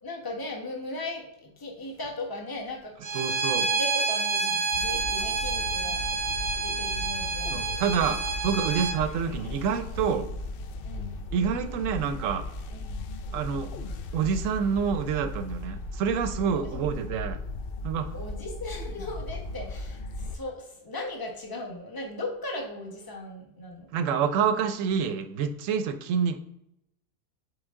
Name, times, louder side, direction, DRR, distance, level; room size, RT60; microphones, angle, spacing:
voice 1, 0.0-2.9 3.6-6.0 6.6-7.9 10.8-11.2 12.7-13.0 16.4-16.8 18.1-23.9 24.3-24.5, left 1 dB, 15° left, 0 dB, 1.0 m, -38 dB
Bowed string instrument, 3.0-9.0, right 4 dB, 40° right, 0.7 m, -28 dB
voice 2, 3.1-3.7 7.5-10.3 11.3-12.4 13.3-13.7 14.1-17.4 17.8-18.1 23.9-26.4, right 7 dB, 75° right, 9 dB, 0.9 m, -27 dB
sound 1, 4.7-20.4, left 2 dB, 65° left, 0.5 m, -37 dB
8.1 x 3.5 x 3.6 m, 0.83 s
omnidirectional pair, 1.4 m